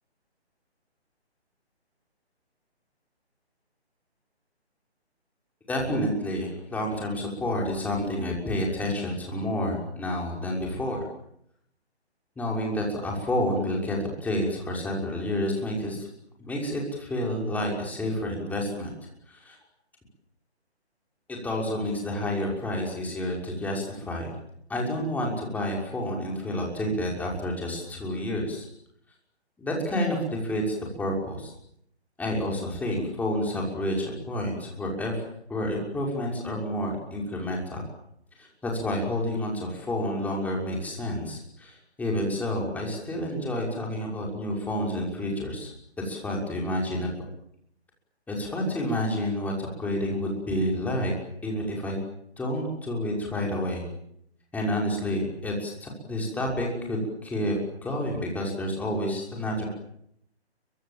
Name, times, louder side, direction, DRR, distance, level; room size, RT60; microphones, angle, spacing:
voice 1, 5.7-11.0 12.4-16.1 16.4-18.9 19.3-19.6 21.3-24.3 24.7-28.7 29.6-31.5 32.2-35.2 35.5-37.9 38.4-45.7 46.0-47.1 48.3-51.1 51.4-52.0 52.4-53.8 54.5-57.6 57.8-59.6, left 1 dB, 5° left, -1 dB, 6.1 m, -29 dB
29.5 x 24.5 x 7.6 m, 0.72 s
figure-of-eight pair, 145°, 33 cm